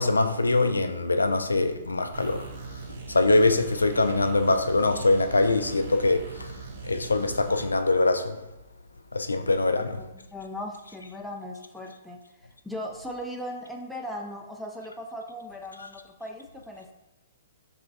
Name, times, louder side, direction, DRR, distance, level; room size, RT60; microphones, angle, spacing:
voice 1, 0.0-2.5 3.1-6.5 6.8-8.4 9.1-10.0, left 2 dB, 85° left, 0.3 m, -23 dB
sound 1, 2.1-7.7, right 4 dB, 50° right, 0.6 m, -41 dB
voice 2, 9.7-12.2 12.6-16.9, left 1 dB, ahead, 0.4 m, -38 dB
3.7 x 3.3 x 2.7 m
figure-of-eight pair, 120°, 0 cm